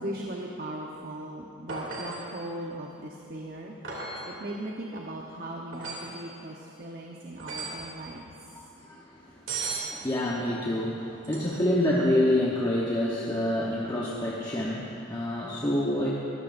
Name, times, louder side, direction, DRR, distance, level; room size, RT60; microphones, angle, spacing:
voice 1, 0.0-3.8 4.3-8.6, right 1 dB, 45° right, -1 dB, 1.0 m, -38 dB
sound 1, 1.7-2.3 3.8-4.3 5.7-6.2 7.4-7.9 9.5-9.9 11.2-11.7 14.5-14.6, right 4 dB, 60° right, 2.9 m, -36 dB
voice 2, 8.5-16.1, left 1 dB, 20° left, -5 dB, 1.1 m, -28 dB
23.5 x 15.0 x 2.6 m, 2.8 s
head